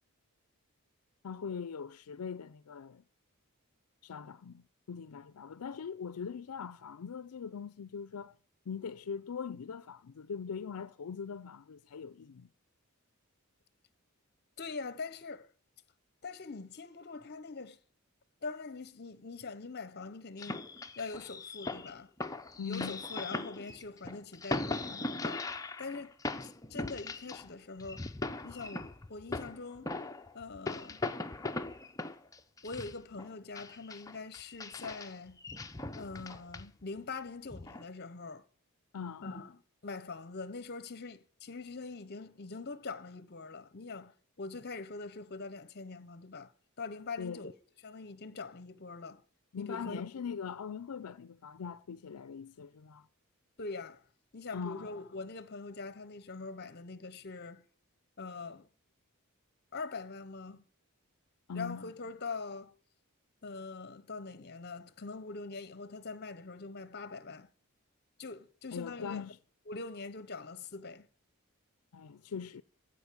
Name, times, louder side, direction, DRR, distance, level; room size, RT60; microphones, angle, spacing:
voice 1, 1.2-3.0 4.0-8.3 8.7-12.5 22.6-23.0 38.9-39.4 47.2-47.4 49.5-53.1 54.5-54.9 61.5-61.8 68.7-69.4 71.9-72.6, left 6 dB, 85° left, 0.5 m, -41 dB
voice 2, 14.6-15.5 16.2-17.8 18.4-20.7 21.0-22.1 22.6-25.4 25.8-26.1 26.7-28.1 28.4-29.9 30.3-31.0 32.6-35.4 36.0-38.5 39.2-46.5 46.8-47.5 47.8-49.2 49.6-50.0 53.6-54.0 54.3-57.6 58.2-58.7 59.7-60.6 61.5-62.7 63.4-67.5 68.2-69.2 69.7-71.1, left 4 dB, 45° left, 0.9 m, -43 dB
sound 1, 20.4-27.5 27.8-33.3 33.6-37.0 37.5-37.8, left 2 dB, 15° left, 0.7 m, -39 dB
15.0 x 5.2 x 9.5 m
head